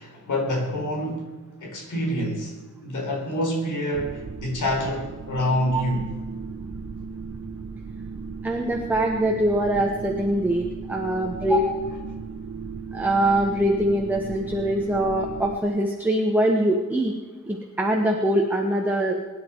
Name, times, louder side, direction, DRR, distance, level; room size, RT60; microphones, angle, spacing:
voice 1, 0.0-1.3 1.6-2.6 2.8-6.0, left 1 dB, 75° left, 1 dB, 4.2 m, -27 dB
sound 1, 3.9-15.6, right 5 dB, 65° right, 1.6 m, -36 dB
voice 2, 8.4-11.8 12.9-17.1 17.5-19.2, right 1 dB, 5° right, 1 dB, 1.3 m, -23 dB
22.5 x 10.5 x 4.7 m, 1.3 s
wide cardioid pair, 170°, 30 cm